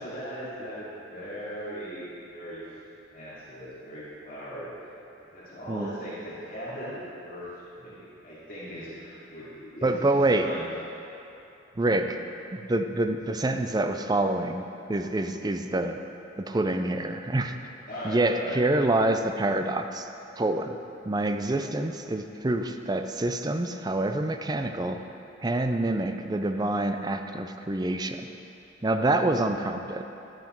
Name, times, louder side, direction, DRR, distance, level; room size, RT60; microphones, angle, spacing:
voice 1, 0.0-2.6 3.1-4.7 5.3-7.4 7.8-10.6 11.7-12.0 17.9-18.6, equal, 45° left, -10 dB, 2.8 m, -39 dB
voice 2, 9.8-10.5 11.8-12.2 12.5-16.0 16.4-17.5 18.0-20.1 20.4-20.8 21.1-25.0 25.4-28.3 28.8-30.1, right 2 dB, 20° right, 7 dB, 0.5 m, -26 dB
11.5 x 9.4 x 4.5 m, 2.9 s
head